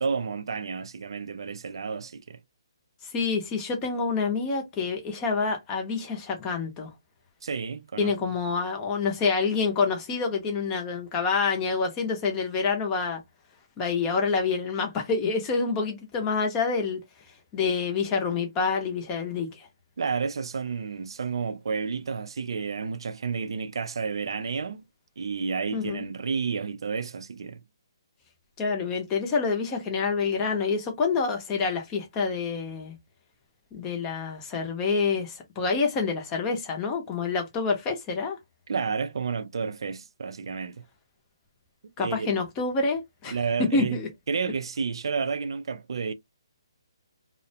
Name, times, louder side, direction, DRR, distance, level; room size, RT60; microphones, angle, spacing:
voice 1, 0.0-2.4 7.4-8.1 20.0-24.8 25.2-27.6 38.7-40.8 42.0-42.3 43.3-44.0 44.3-46.1, right 5 dB, 65° right, 0.4 m, -31 dB
voice 2, 3.0-6.9 8.0-13.2 13.8-17.0 17.5-19.7 25.7-26.1 28.6-33.0 33.7-38.4 42.0-43.4 43.7-44.1, left 4 dB, 15° left, 0.5 m, -27 dB
2.4 x 2.1 x 2.6 m
hypercardioid pair, 165°, 3 cm